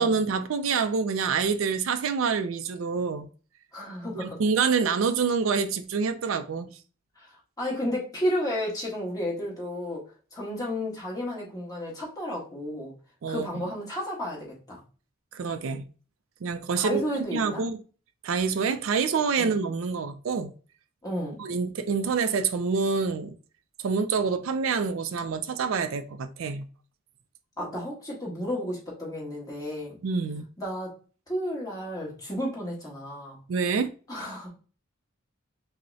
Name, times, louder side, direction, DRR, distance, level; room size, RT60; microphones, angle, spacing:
voice 1, 0.0-3.3 4.2-6.7 13.2-13.5 15.3-15.8 16.4-17.0 17.3-17.8 18.2-20.5 21.4-23.3 23.8-26.7 30.0-30.5 33.5-33.9, right 5 dB, 75° right, 0.4 m, -26 dB
voice 2, 3.7-4.4 7.2-10.0 10.3-12.9 13.3-14.8 16.7-17.6 19.4-19.5 21.0-21.4 27.6-30.0 30.6-31.0 31.3-33.4 34.1-34.5, left 1 dB, 20° left, 1.4 m, -32 dB
5.4 x 2.1 x 2.7 m
head